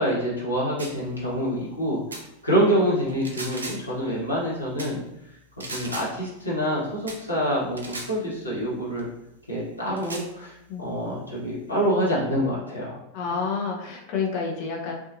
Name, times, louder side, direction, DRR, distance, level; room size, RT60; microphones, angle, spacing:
voice 1, 0.0-2.0 2.4-5.0 5.7-9.1 9.5-10.5 10.8-12.9, equal, 85° left, -7 dB, 1.1 m, -26 dB
sound 1, 0.8-1.0 2.1-2.3 3.1-3.9 4.8-5.0 5.6-6.1 7.1-7.2 7.8-8.1 9.0-9.1 10.0-10.3, right 2 dB, 75° right, 0.4 m, -37 dB
voice 2, 13.1-14.9, left 5 dB, 45° left, -1 dB, 0.7 m, -29 dB
2.8 x 2.3 x 2.6 m, 0.85 s
figure-of-eight pair, 90°, 0 cm